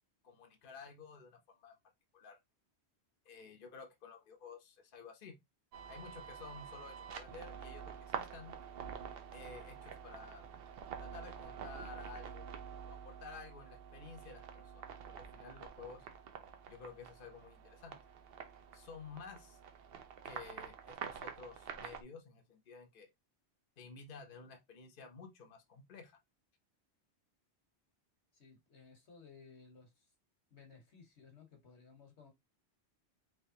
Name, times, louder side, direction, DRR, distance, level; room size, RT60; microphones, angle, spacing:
voice 1, 0.2-1.7 2.1-2.4 3.3-5.4 5.9-8.5 9.3-10.5 11.0-12.6 12.9-14.8 15.2-16.1 16.7-18.0 18.7-19.6 20.2-23.1 23.8-26.2, left 5 dB, 55° left, 0.9 m, -52 dB
sound 1, 5.7-22.0, right 7 dB, 65° right, 0.8 m, -48 dB
voice 2, 28.3-30.1 30.5-32.3, left 5 dB, 85° left, 1.5 m, -59 dB
3.4 x 3.1 x 2.8 m
omnidirectional pair, 1.1 m